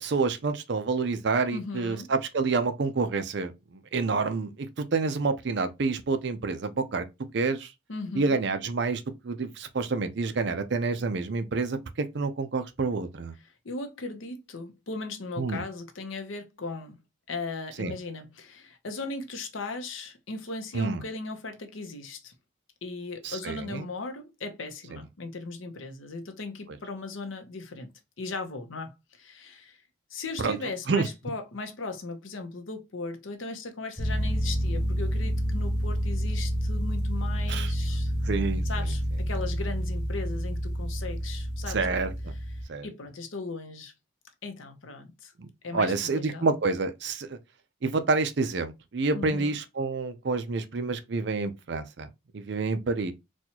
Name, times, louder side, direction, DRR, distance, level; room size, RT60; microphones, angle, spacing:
voice 1, 0.0-7.1 7.3-7.7 8.1-13.3 15.4-15.6 17.8-17.9 20.7-21.0 23.2-23.9 30.4-30.6 30.9-31.1 37.5-37.7 38.3-38.9 41.7-42.1 42.7-42.9 45.4-47.4 47.8-52.1 52.3-53.1, right 4 dB, 55° right, 0.5 m, -28 dB
voice 2, 1.5-2.1 7.9-8.4 13.4-17.0 17.3-22.3 22.8-29.8 30.1-38.1 38.6-41.9 42.5-43.9 44.4-45.3 45.6-46.5 49.1-49.5, left 3 dB, 75° left, 0.8 m, -38 dB
sound 1, 34.0-42.6, equal, 5° right, 0.9 m, -29 dB
4.2 x 2.3 x 2.9 m
head